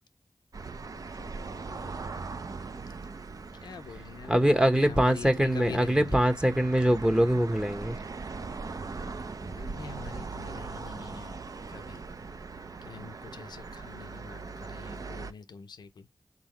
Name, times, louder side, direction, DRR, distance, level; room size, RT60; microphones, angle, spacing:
sound 1, 0.5-15.3, right 4 dB, 55° right, 0.5 m, -40 dB
voice 1, 0.9-1.9 3.6-6.3 9.4-11.4 11.7-12.0 12.8-16.1, left 5 dB, 90° left, 0.5 m, -45 dB
voice 2, 4.3-8.0, equal, 10° right, 1.0 m, -23 dB
4.0 x 3.7 x 3.0 m
cardioid pair, 45°, 7 cm